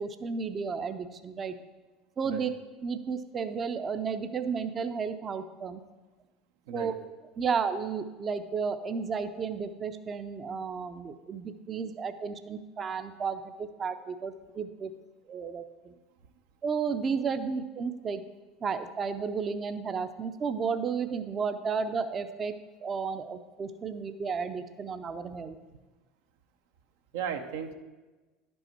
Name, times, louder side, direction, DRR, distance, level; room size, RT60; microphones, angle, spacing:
voice 1, 0.0-1.5 2.2-2.5 2.8-5.8 6.7-6.9 7.4-14.9 15.3-15.9 16.6-18.2 18.6-22.5 22.8-25.6, right 5 dB, 35° right, 9 dB, 0.5 m, -33 dB
voice 2, 27.1-27.7, right 8 dB, 80° right, 6 dB, 0.6 m, -35 dB
10.5 x 5.4 x 4.3 m, 1.2 s
hypercardioid pair, 90°, 0 cm